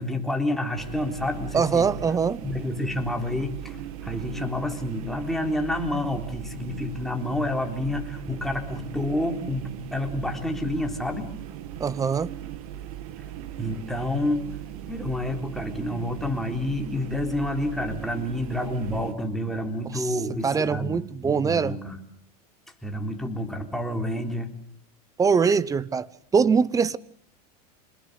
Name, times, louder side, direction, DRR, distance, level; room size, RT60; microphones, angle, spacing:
voice 1, 0.0-1.9 2.4-11.3 13.6-14.5 14.9-22.0 22.8-24.5, left 1 dB, ahead, 3.8 m, -29 dB
sound 1, 0.8-19.1, right 12 dB, 70° right, 2.4 m, -38 dB
voice 2, 1.5-2.4 11.8-12.3 19.9-20.1 20.4-21.8 25.2-26.1 26.3-27.0, right 5 dB, 15° right, 0.9 m, -22 dB
27.0 x 20.5 x 8.3 m
supercardioid pair, 125°, 20 cm